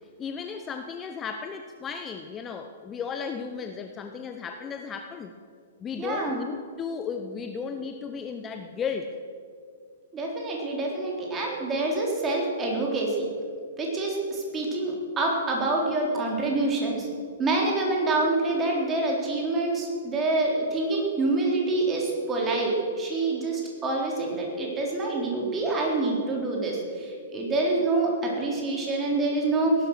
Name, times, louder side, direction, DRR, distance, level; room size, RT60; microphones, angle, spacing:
voice 1, 0.2-5.3 5.8-9.2, left 6 dB, 20° left, 7 dB, 0.8 m, -34 dB
voice 2, 6.0-6.4 10.1-13.3 13.8-17.1 17.4-29.7, right 2 dB, 20° right, -1 dB, 3.9 m, -26 dB
18.0 x 11.5 x 6.4 m, 2.2 s
figure-of-eight pair, 110°, 0 cm